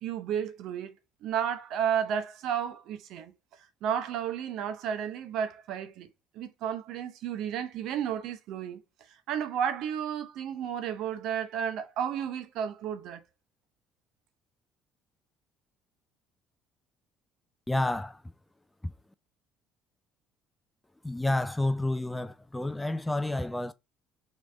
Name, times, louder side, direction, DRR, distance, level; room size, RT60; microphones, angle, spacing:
voice 1, 0.0-0.9 1.2-3.3 3.8-6.1 6.3-8.8 9.1-13.2, right 8 dB, 70° right, 0.7 m, -32 dB
voice 2, 17.7-18.2 18.8-18.9 21.0-23.7, left 2 dB, 10° left, 0.4 m, -29 dB
3.2 x 3.2 x 3.7 m
supercardioid pair, 90°, 0 cm